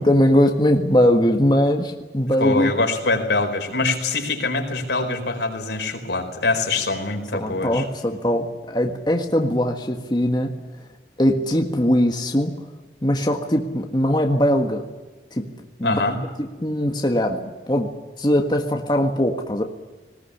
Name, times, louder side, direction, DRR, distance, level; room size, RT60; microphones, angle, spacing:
voice 1, 0.0-2.7 7.3-10.5 11.2-12.5 13.0-14.8 15.3-15.5 15.8-16.0 16.4-17.4 17.7-17.9 18.2-19.6, equal, 25° left, 3 dB, 1.6 m, -20 dB
voice 2, 2.4-7.8 15.8-16.2, left 3 dB, 90° left, 4 dB, 4.8 m, -24 dB
20.0 x 19.0 x 9.9 m, 1.2 s
head